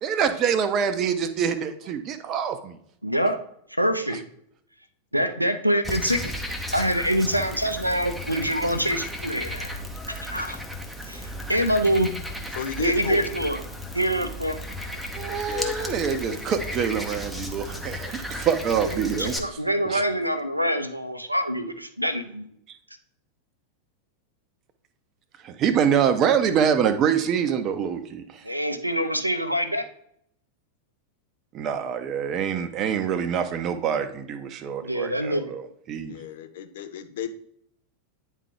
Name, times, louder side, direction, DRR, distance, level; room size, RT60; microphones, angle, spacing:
voice 1, 0.0-2.8 4.1-4.2 15.2-19.3 19.8-20.0 25.4-28.4 31.5-36.2, right 8 dB, 35° right, 9 dB, 0.7 m, -25 dB
voice 2, 3.0-3.4 3.8-4.2 5.1-6.2 6.7-9.8 10.1-10.6 11.1-12.1 12.8-13.6 13.9-14.6 15.2-15.3 18.9-22.4 28.4-29.8 34.8-35.5, equal, 90° right, 9 dB, 0.6 m, -25 dB
Frog, 5.8-19.4, left 1 dB, ahead, 0.8 m, -34 dB
voice 3, 12.5-13.3 15.5-16.7 19.1-19.3 36.1-37.3, left 8 dB, 55° left, 8 dB, 0.6 m, -34 dB
9.2 x 3.7 x 3.4 m, 0.69 s
figure-of-eight pair, 90°, 0 cm